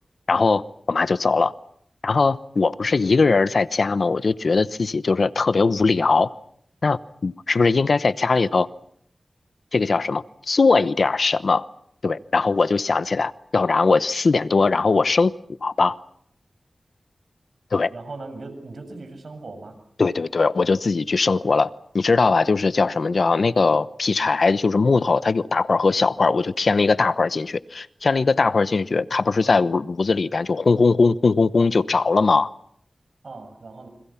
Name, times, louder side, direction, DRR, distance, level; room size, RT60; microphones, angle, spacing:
voice 1, 0.3-0.6 0.9-1.5 2.0-6.3 6.8-8.7 9.7-11.7 12.0-15.3 15.6-15.9 17.7-17.9 20.0-32.5, left 4 dB, 70° left, 14 dB, 0.9 m, -20 dB
voice 2, 17.9-19.8 33.2-33.9, right 3 dB, 70° right, 7 dB, 7.2 m, -38 dB
29.5 x 26.0 x 5.8 m, 0.67 s
cardioid pair, 55°, 0 cm